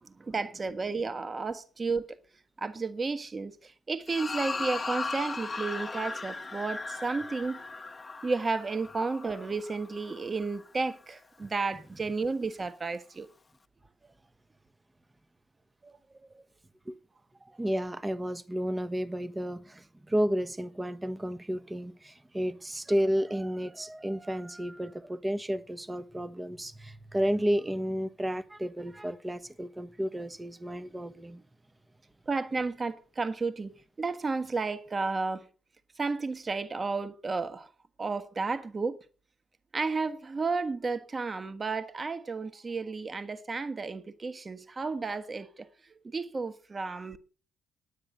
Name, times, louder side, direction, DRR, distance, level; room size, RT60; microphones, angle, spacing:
voice 1, 0.0-2.2 2.6-7.6 8.2-13.3 15.8-15.9 32.3-33.7 34.0-35.5 36.0-37.7 38.0-39.0 39.7-45.7 46.0-47.2, right 4 dB, 30° right, 1.5 m, -32 dB
sound 1, 4.1-10.6, left 3 dB, 30° left, 1.1 m, -37 dB
voice 2, 17.6-31.4, equal, 15° right, 1.1 m, -32 dB
9.8 x 9.7 x 6.5 m
hypercardioid pair, 50°, 0 cm